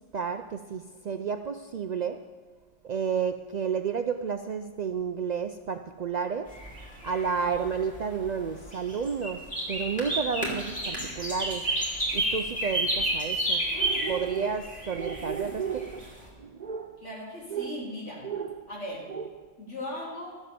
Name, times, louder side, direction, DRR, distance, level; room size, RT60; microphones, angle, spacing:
voice 1, 0.1-2.2 2.8-6.5 7.0-9.4 9.7-11.7 12.1-16.1 16.4-17.1 17.5-17.8 18.2-18.7 19.1-19.5, right 6 dB, 60° right, 7 dB, 0.4 m, -31 dB
sound 1, 6.5-16.3, right 1 dB, 5° left, 2.9 m, -31 dB
voice 2, 17.0-18.3 18.7-19.1 19.6-20.4, left 1 dB, 80° left, -4 dB, 3.3 m, -38 dB
12.5 x 7.3 x 6.7 m, 1.4 s
omnidirectional pair, 1.2 m